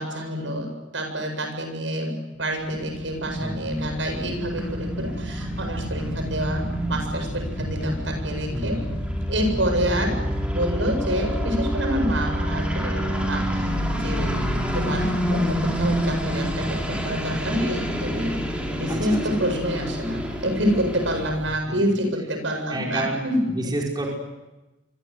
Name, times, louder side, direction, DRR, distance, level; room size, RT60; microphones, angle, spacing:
voice 1, 0.0-8.8 9.3-10.2 10.5-14.3 14.7-18.4 18.7-23.4, equal, 80° right, 4 dB, 7.9 m, -27 dB
sound 1, 2.5-21.3, equal, 5° right, 5.3 m, -28 dB
voice 2, 8.5-8.9 18.9-19.4 22.7-23.2 23.5-24.1, right 1 dB, 20° right, -1 dB, 5.4 m, -29 dB
sound 2, 13.6-21.6, left 2 dB, 60° left, 0.9 m, -35 dB
28.5 x 24.5 x 8.2 m, 1.0 s
head